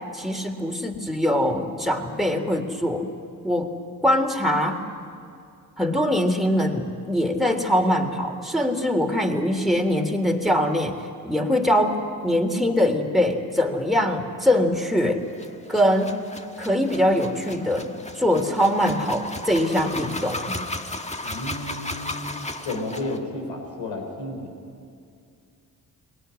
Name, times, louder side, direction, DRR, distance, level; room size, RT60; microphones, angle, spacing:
voice 1, 0.1-3.1 3.4-3.7 4.0-4.8 5.8-10.9 11.2-12.0 12.2-15.3 15.7-16.1 16.6-17.9 18.2-20.6, equal, ahead, 2 dB, 3.5 m, -22 dB
sound 1, 15.3-23.2, left 2 dB, 15° left, 1.8 m, -35 dB
voice 2, 21.2-24.5, left 2 dB, 85° left, 1 dB, 4.6 m, -32 dB
21.5 x 18.5 x 9.9 m, 2.4 s
hypercardioid pair, 40°, 43 cm